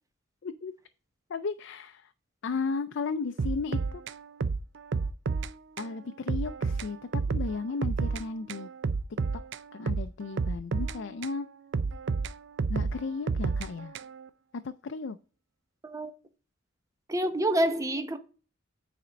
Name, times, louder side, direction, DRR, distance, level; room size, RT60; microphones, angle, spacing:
voice 1, 0.4-0.7 1.3-2.1 2.4-4.0 5.8-8.7 9.7-11.5 12.7-14.0 14.6-15.2, left 4 dB, 65° left, 0.4 m, -34 dB
sound 1, 3.4-5.5 5.8-5.9 6.3-8.2 8.5-11.4 11.7-14.3, right 4 dB, 65° right, 0.5 m, -31 dB
voice 2, 17.1-18.2, right 1 dB, 15° right, 0.8 m, -27 dB
9.3 x 4.3 x 5.1 m
head